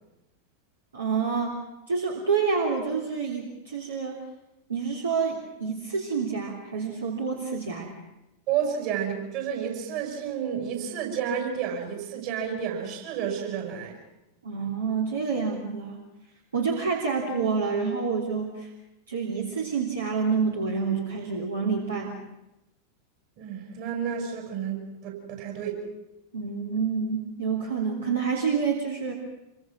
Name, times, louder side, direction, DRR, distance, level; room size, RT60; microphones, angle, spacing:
voice 1, 0.9-1.6 1.9-4.2 4.7-8.0 14.4-16.0 16.5-18.7 19.1-22.2 26.3-29.1, right 5 dB, 70° right, -1 dB, 3.3 m, -28 dB
voice 2, 8.5-13.9 23.4-25.8, right 8 dB, 45° right, 3 dB, 6.8 m, -31 dB
27.0 x 23.5 x 6.3 m, 0.91 s
figure-of-eight pair, 90°, 0 cm